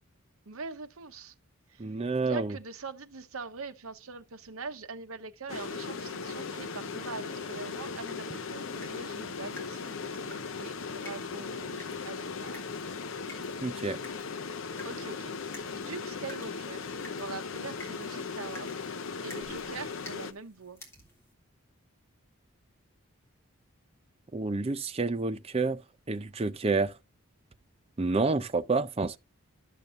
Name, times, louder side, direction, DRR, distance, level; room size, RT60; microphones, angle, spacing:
voice 1, 0.5-1.3 1.7-1.9 2.2-12.7 13.3-13.5 14.8-18.8 19.2-20.8, right 4 dB, 75° right, 0.9 m, -43 dB
voice 2, 1.8-2.6 13.6-14.0 24.3-25.8 26.1-26.9 28.0-29.2, right 3 dB, 25° right, 0.5 m, -29 dB
sound 1, 5.5-20.3, left 5 dB, 65° left, 0.7 m, -38 dB
sound 2, 8.1-21.3, left 1 dB, 10° left, 2.0 m, -53 dB
12.0 x 6.7 x 2.5 m
head